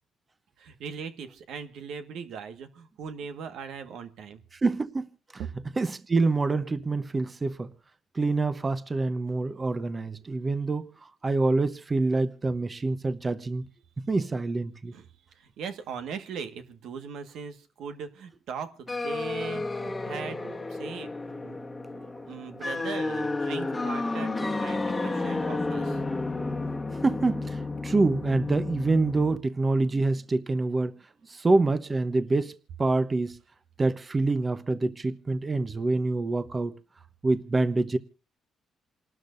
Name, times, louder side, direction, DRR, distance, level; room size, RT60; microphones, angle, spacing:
voice 1, 0.6-4.4 14.9-15.1 15.3-21.1 21.4-21.6 22.3-26.0, right 6 dB, 80° right, 1.5 m, -39 dB
voice 2, 4.5-5.1 5.8-7.7 8.1-13.7 14.1-14.9 27.0-31.0 31.3-32.5 32.8-33.4 33.8-36.7 37.2-38.0, right 3 dB, 30° right, 0.9 m, -26 dB
sound 1, 18.9-29.4, left 2 dB, 20° left, 1.3 m, -31 dB
28.0 x 12.5 x 2.6 m
cardioid pair, 90°, 0 cm